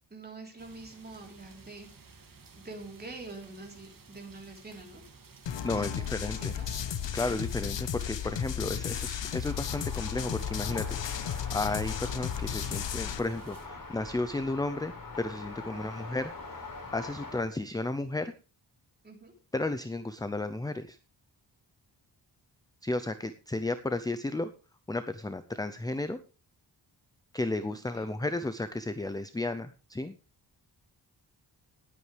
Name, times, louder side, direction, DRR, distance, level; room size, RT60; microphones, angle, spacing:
voice 1, 0.1-5.0 5.7-6.8 15.7-16.0 19.0-19.3 27.7-28.2, right 3 dB, 20° right, 1 dB, 3.6 m, -46 dB
sound 1, 0.6-13.7, right 4 dB, 50° right, 2.5 m, -55 dB
sound 2, 5.5-13.2, left 9 dB, 80° left, 1.1 m, -34 dB
voice 2, 5.6-6.5 7.1-18.3 19.5-21.0 22.8-24.5 24.9-26.2 27.3-30.1, left 2 dB, 10° left, 11 dB, 0.5 m, -33 dB
sound 3, 9.5-17.4, left 3 dB, 50° left, 4.6 m, -43 dB
19.0 x 8.5 x 3.3 m, 0.34 s
wide cardioid pair, 155°, 42 cm